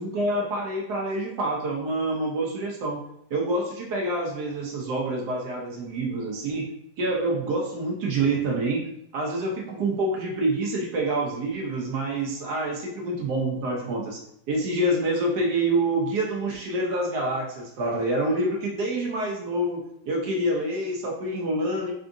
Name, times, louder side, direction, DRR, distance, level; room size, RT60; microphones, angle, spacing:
voice 1, 0.0-3.0 3.3-6.6 7.0-8.9 9.1-14.2 14.5-21.9, right 1 dB, 70° right, -1 dB, 1.0 m, -27 dB
3.7 x 3.5 x 2.5 m, 0.74 s
omnidirectional pair, 2.3 m